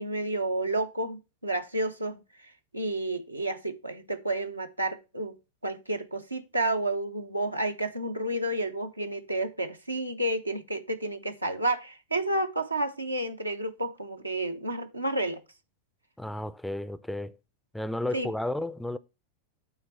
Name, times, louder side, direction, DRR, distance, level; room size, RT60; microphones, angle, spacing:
voice 1, 0.0-2.2 2.7-5.3 5.6-15.4 18.1-18.3, right 1 dB, 85° right, 0.9 m, -30 dB
voice 2, 16.2-17.4 17.7-19.0, left 1 dB, 5° left, 0.5 m, -32 dB
9.2 x 4.4 x 4.2 m
figure-of-eight pair, 90°, 0 cm